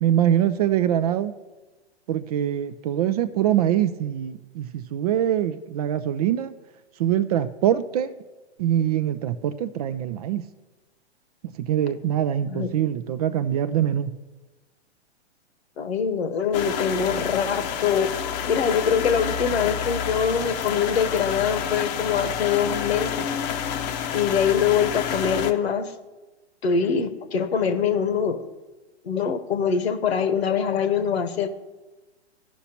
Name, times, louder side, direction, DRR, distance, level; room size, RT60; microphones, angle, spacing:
voice 1, 0.0-1.3 2.1-6.5 7.0-8.1 8.6-10.4 11.6-14.1, right 10 dB, 35° right, 13 dB, 0.4 m, -23 dB
voice 2, 15.8-18.1 18.5-23.3 24.1-25.9 26.6-28.4 29.0-31.5, left 7 dB, 65° left, 10 dB, 1.1 m, -23 dB
sound 1, 16.5-25.5, left 8 dB, 40° left, 0.8 m, -29 dB
16.0 x 5.8 x 2.9 m, 1.2 s
hypercardioid pair, 115°, 33 cm